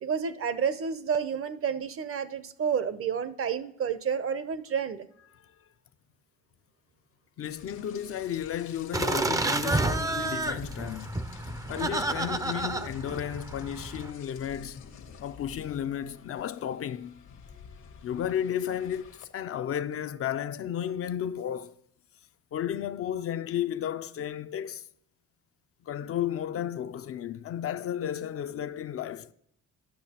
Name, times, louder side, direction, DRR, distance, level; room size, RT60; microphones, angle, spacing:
voice 1, 0.0-5.1, right 7 dB, 45° right, 0.6 m, -30 dB
voice 2, 7.4-11.2 11.7-14.8 15.2-17.2 18.0-21.7 22.5-24.8 25.9-29.3, left 10 dB, 50° left, 0.4 m, -33 dB
Rain, 7.5-19.2, left 6 dB, 75° left, 1.1 m, -48 dB
sound 1, 8.9-14.1, right 2 dB, 10° right, 0.4 m, -30 dB
10.0 x 6.2 x 2.9 m
cardioid pair, 90°, 30 cm